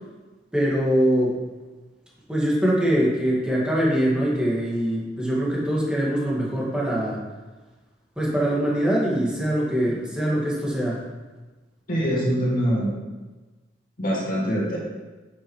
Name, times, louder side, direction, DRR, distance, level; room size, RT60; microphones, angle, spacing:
voice 1, 0.5-1.4 2.3-7.2 8.2-11.1, equal, 5° right, -6 dB, 1.9 m, -23 dB
voice 2, 11.9-12.9 14.0-14.8, equal, 50° left, -5 dB, 2.1 m, -23 dB
8.7 x 7.3 x 3.2 m, 1.2 s
head